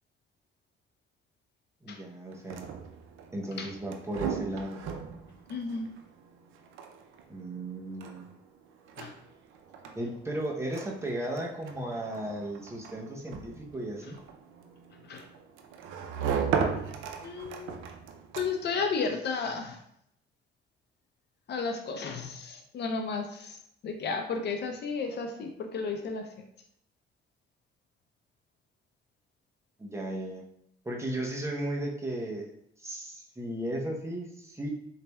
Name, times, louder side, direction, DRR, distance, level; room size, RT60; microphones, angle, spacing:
voice 1, 1.8-2.7 3.3-4.9 7.3-8.3 10.0-14.2 29.8-30.5 30.8-32.5 32.8-34.7, right 1 dB, 15° right, -1 dB, 0.7 m, -35 dB
sound 1, 2.3-18.8, right 6 dB, 85° right, 0.4 m, -37 dB
voice 2, 5.5-5.9 9.0-9.1 15.1-15.2 17.2-17.9 18.4-19.8 21.5-23.6 23.8-26.3, left 4 dB, 60° left, 4 dB, 0.6 m, -33 dB
4.0 x 3.2 x 2.2 m, 0.72 s
cardioid pair, 90°, 20 cm